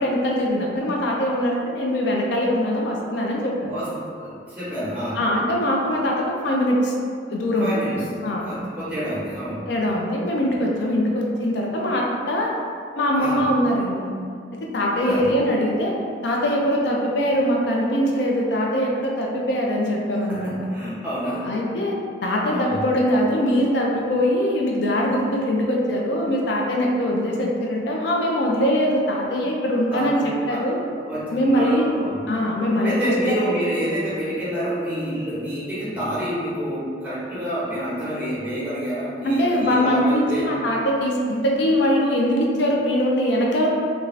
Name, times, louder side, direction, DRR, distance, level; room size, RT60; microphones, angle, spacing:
voice 1, 0.0-3.5 5.1-6.9 7.3-7.7 8.2-8.5 9.7-12.5 13.0-14.1 14.7-15.9 16.2-20.5 21.4-21.9 22.2-30.8 31.3-31.9 32.3-33.4 39.2-43.7, equal, 75° left, -2 dB, 0.4 m, -22 dB
voice 2, 3.6-5.2 7.6-8.0 8.4-9.7 13.2-13.4 14.9-15.3 20.3-21.5 22.4-22.8 29.9-30.6 31.0-32.2 32.8-40.5, equal, 10° right, -11 dB, 0.9 m, -28 dB
2.4 x 2.3 x 3.1 m, 2.2 s
head